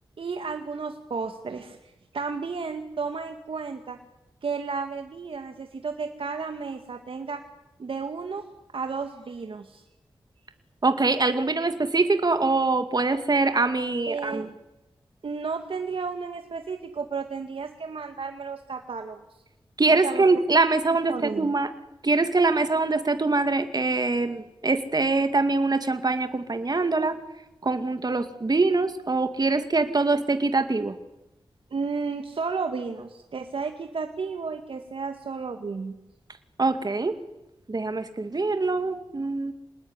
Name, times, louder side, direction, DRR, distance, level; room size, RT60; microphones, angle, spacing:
voice 1, 0.2-4.0 4.4-7.4 7.8-8.4 8.7-9.8 14.1-14.5 15.2-19.2 19.9-20.3 21.1-21.5 31.7-35.9, right 5 dB, 75° right, 5 dB, 2.1 m, -33 dB
voice 2, 10.8-14.5 19.8-21.7 22.0-27.2 27.6-31.0 36.6-37.1 37.7-39.5, right 3 dB, 45° right, 8 dB, 2.3 m, -23 dB
27.0 x 20.0 x 9.8 m, 0.97 s
cardioid pair, 40°, 9 cm